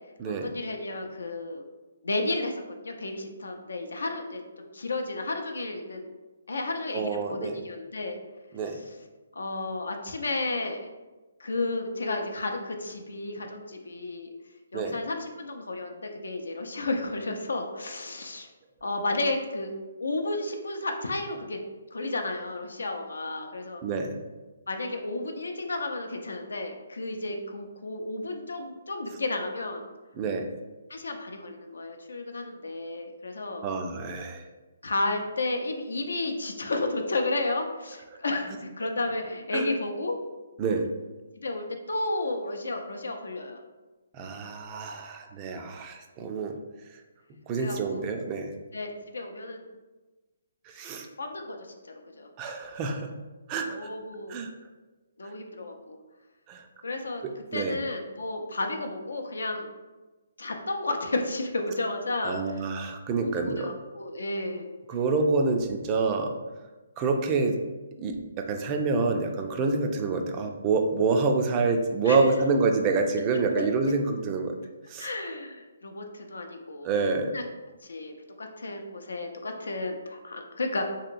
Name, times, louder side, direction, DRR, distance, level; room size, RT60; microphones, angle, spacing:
voice 1, 0.3-1.6 2.0-6.1 6.5-8.2 8.6-8.9 9.3-10.8 11.4-14.3 14.7-18.5 18.8-19.7 20.0-21.6 21.9-23.8 24.7-29.8 30.9-33.7 34.8-40.2 41.4-43.6 47.6-48.0 48.7-49.7 51.2-52.3 53.7-54.4 55.2-56.0 56.8-57.2 57.5-59.7 60.4-62.7 63.1-64.7 72.0-72.2 73.5-73.6 75.0-77.4 77.8-80.8, left 2 dB, 85° left, 4 dB, 0.4 m, -32 dB
voice 2, 6.9-7.6 8.5-8.8 14.7-15.0 23.8-24.2 30.2-30.5 33.6-34.4 39.5-39.7 40.6-40.9 44.1-46.6 47.5-48.5 50.7-51.1 52.4-53.1 53.5-53.9 54.3-54.5 56.5-56.6 57.5-57.8 62.2-63.7 64.9-66.4 67.0-67.6 68.0-74.6 74.9-75.1 76.8-77.3, right 4 dB, 25° right, 4 dB, 0.3 m, -27 dB
2.9 x 2.8 x 2.5 m, 1.2 s
hypercardioid pair, 150°, 0 cm